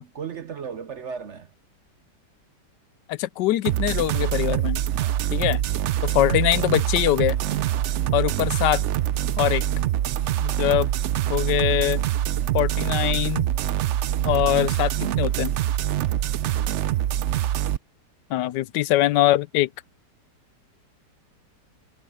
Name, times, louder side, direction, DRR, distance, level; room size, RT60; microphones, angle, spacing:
voice 1, 0.0-1.5 5.0-5.3 7.7-8.4 12.4-12.6 13.0-13.3 16.4-17.0, right 6 dB, 55° right, 0.8 m, -38 dB
voice 2, 3.1-4.8 5.3-5.6 6.1-7.4 8.1-8.8 9.4-9.6 10.4-10.9 11.3-12.0 12.5-13.5 14.2-15.5 18.3-19.7, left 15 dB, 85° left, 1.2 m, -22 dB
sound 1, 3.6-17.8, right 12 dB, 85° right, 0.6 m, -24 dB
omnidirectional pair, 1.8 m